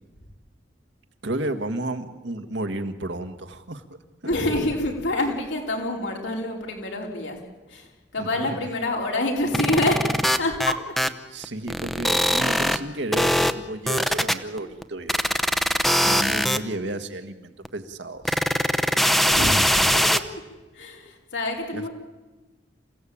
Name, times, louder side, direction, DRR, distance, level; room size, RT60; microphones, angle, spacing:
voice 1, 1.2-3.8 4.2-4.3 8.2-8.7 11.3-15.3 16.0-18.4 19.6-20.1 21.7-21.9, right 1 dB, 70° right, 7 dB, 1.7 m, -32 dB
voice 2, 4.3-7.4 7.7-10.0 10.3-10.8 16.7-16.8 19.3-20.0 20.7-21.9, left 2 dB, 85° left, 0 dB, 4.6 m, -27 dB
sound 1, 9.5-11.1 11.4-12.8 13.1-13.5 13.9-14.8 15.1-16.6 17.6-17.7 18.2-20.2, equal, ahead, 0.8 m, -21 dB
28.0 x 16.0 x 8.7 m, 1.2 s
head